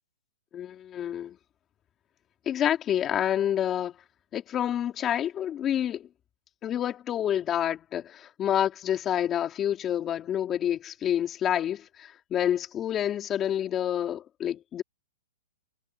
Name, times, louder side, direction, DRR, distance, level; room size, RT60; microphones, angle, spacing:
voice 1, 0.5-1.4 2.4-3.9 4.3-6.1 6.6-14.8, left 10 dB, 20° left, 3.3 m, -28 dB
hypercardioid pair, 145°, 0 cm